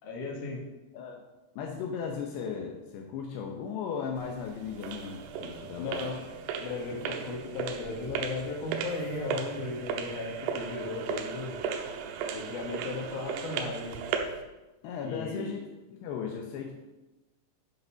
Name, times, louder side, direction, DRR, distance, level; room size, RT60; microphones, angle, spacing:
voice 1, 0.0-0.6 5.8-6.2 6.6-11.6 12.3-14.0 15.0-15.6, left 3 dB, 60° left, 0 dB, 2.3 m, -36 dB
voice 2, 1.6-6.1 6.7-6.8 14.8-15.6 15.9-16.8, left 6 dB, 85° left, 1 dB, 2.3 m, -36 dB
sound 1, 4.2-14.4, right 6 dB, 90° right, 3.5 m, -36 dB
11.0 x 5.3 x 6.4 m, 1.1 s
omnidirectional pair, 6.0 m